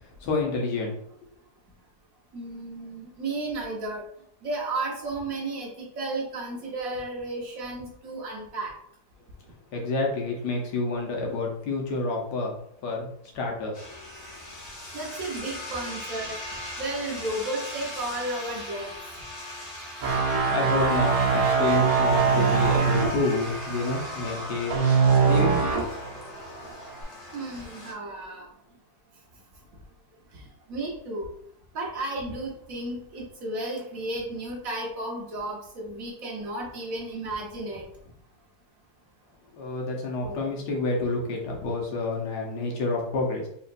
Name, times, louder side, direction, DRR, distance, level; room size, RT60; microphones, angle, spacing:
voice 1, 0.2-1.0 9.7-12.5 12.8-13.9 20.5-24.8 25.2-25.6 39.5-43.5, left 3 dB, 80° left, -1 dB, 1.5 m, -28 dB
voice 2, 2.3-4.0 4.4-8.7 14.9-16.4 16.8-18.9 27.3-28.5 30.3-31.3 31.7-37.8 40.2-40.6, right 2 dB, 60° right, -3 dB, 1.5 m, -33 dB
sound 1, 13.7-27.9, left 1 dB, 45° left, 1.3 m, -39 dB
sound 2, 20.0-26.0 26.4-26.7, right 5 dB, 85° right, 1.4 m, -22 dB
4.3 x 3.1 x 2.5 m, 0.70 s
omnidirectional pair, 1.7 m